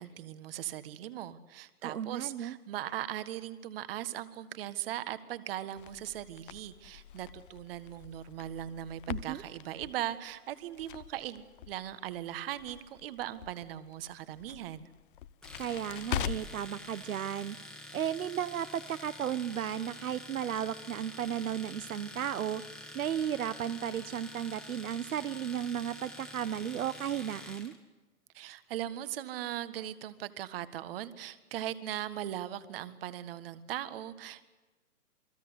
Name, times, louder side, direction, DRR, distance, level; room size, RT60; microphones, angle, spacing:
voice 1, 0.0-14.9 28.3-34.5, right 12 dB, 40° right, 13 dB, 1.7 m, -39 dB
voice 2, 1.8-2.6 9.1-9.4 15.6-17.6 17.9-22.6 22.9-27.7, right 9 dB, 65° right, 13 dB, 1.2 m, -34 dB
Crackle, 5.8-16.7, left 11 dB, 35° left, 1.0 m, -43 dB
Domestic sounds home sounds, 15.4-27.8, left 1 dB, ahead, 1.8 m, -47 dB
28.5 x 21.0 x 8.2 m, 1.2 s
hypercardioid pair, 155°, 45 cm